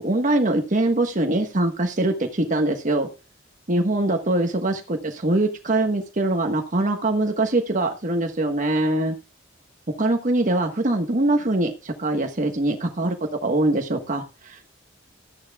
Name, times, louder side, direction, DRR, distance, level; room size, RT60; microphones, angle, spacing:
voice 1, 0.0-3.1 3.7-9.1 9.9-13.1 13.4-14.7, right 2 dB, 40° right, 3 dB, 1.3 m, -23 dB
14.0 x 10.5 x 2.3 m, 0.30 s
head